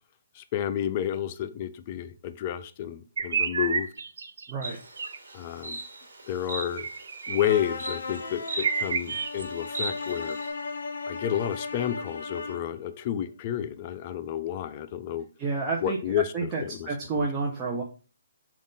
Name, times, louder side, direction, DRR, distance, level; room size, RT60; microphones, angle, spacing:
voice 1, 0.4-3.9 5.3-5.8 6.3-6.9 7.3-10.4 11.1-15.3 15.8-16.3 16.6-16.9 17.1-17.3, left 10 dB, 35° left, 10 dB, 0.4 m, -30 dB
sound 1, 3.2-4.5 5.0-5.2 6.8-7.6 8.2-8.3 8.5-9.4, right 5 dB, 70° right, 0.5 m, -30 dB
Insect, 4.6-10.5, right 2 dB, 85° right, 1.4 m, -39 dB
sound 2, 7.4-12.7, left 4 dB, 70° left, 0.7 m, -36 dB
voice 2, 15.4-17.8, right 3 dB, 20° right, -2 dB, 0.6 m, -30 dB
3.6 x 2.3 x 3.9 m, 0.37 s
hypercardioid pair, 155°, 0 cm